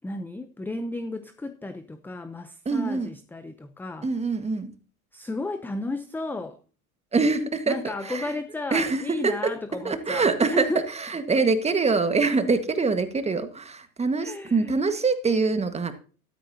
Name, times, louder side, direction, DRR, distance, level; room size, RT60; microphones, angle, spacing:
voice 1, 0.0-4.1 5.1-6.6 7.7-10.8 14.2-14.8, left 2 dB, 5° left, 0.7 m, -33 dB
voice 2, 2.6-3.1 4.0-4.7 7.1-8.4 8.7-9.5 9.8-15.9, right 4 dB, 15° right, 1.6 m, -24 dB
13.5 x 13.5 x 2.8 m
hypercardioid pair, 95°, 44 cm